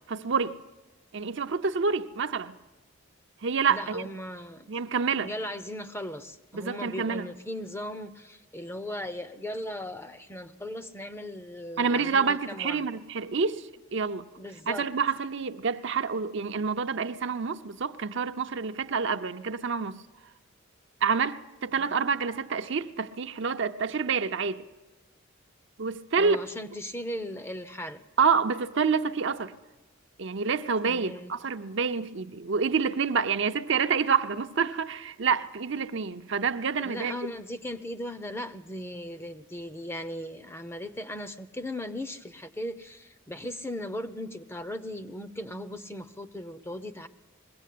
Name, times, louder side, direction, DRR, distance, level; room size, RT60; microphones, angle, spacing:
voice 1, 0.1-0.6 1.1-2.5 3.4-4.0 4.7-5.3 6.5-7.3 11.8-13.6 13.9-14.2 14.7-19.9 21.0-24.6 25.8-26.4 28.2-29.5 30.2-37.1, right 5 dB, 60° right, 0.7 m, -27 dB
voice 2, 3.7-4.7 5.2-12.9 14.4-14.9 21.7-21.9 26.2-28.0 30.9-31.3 36.8-47.1, left 1 dB, 10° left, 0.6 m, -38 dB
21.0 x 16.0 x 8.4 m
head